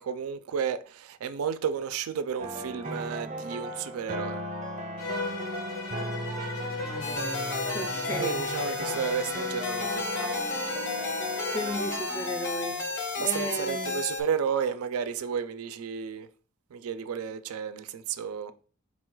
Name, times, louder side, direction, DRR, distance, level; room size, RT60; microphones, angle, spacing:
voice 1, 0.0-4.4 8.2-10.4 13.2-16.3 16.7-18.5, right 7 dB, 80° right, 0.3 m, -32 dB
sound 1, 2.4-13.3, equal, 30° right, 0.6 m, -37 dB
Bowed string instrument, 5.0-11.7, left 3 dB, 80° left, 1.0 m, -37 dB
voice 2, 6.8-9.0 11.4-14.0, equal, 10° left, 0.3 m, -36 dB
sound 2, 7.0-14.2, left 3 dB, 60° left, 0.6 m, -33 dB
4.2 x 2.2 x 4.5 m
head